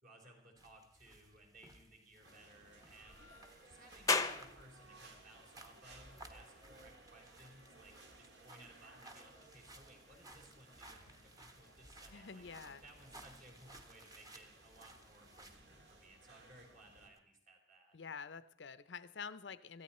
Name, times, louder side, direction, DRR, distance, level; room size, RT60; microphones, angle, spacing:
voice 1, 0.0-3.2 3.6-12.4 12.8-18.0, right 1 dB, 50° right, 1 dB, 3.9 m, -61 dB
sound 1, 0.6-15.6, right 1 dB, 20° right, 1.2 m, -60 dB
sound 2, 2.2-17.1, right 2 dB, 70° right, 2.3 m, -61 dB
sound 3, 4.1-17.2, left 4 dB, 20° left, 0.7 m, -45 dB
voice 2, 12.1-12.8 17.9-19.8, left 5 dB, 90° left, 14 dB, 0.6 m, -48 dB
18.0 x 14.5 x 4.3 m, 0.69 s
head